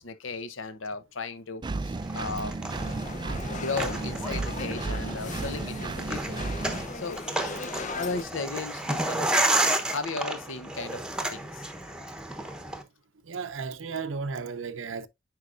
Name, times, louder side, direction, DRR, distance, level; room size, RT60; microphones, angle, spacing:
voice 1, 0.0-2.5 3.5-6.6 6.9-7.2 8.0-11.0 11.3-11.7, left 3 dB, 85° left, 0.9 m, -36 dB
Engine, 1.6-6.9, right 3 dB, 25° right, 0.3 m, -33 dB
sound 1, 2.0-12.8, right 1 dB, 5° right, 0.9 m, -32 dB
sound 2, 2.7-8.2, left 4 dB, 40° left, 0.7 m, -39 dB
voice 2, 13.3-15.1, right 5 dB, 85° right, 0.7 m, -34 dB
9.5 x 4.7 x 2.5 m
head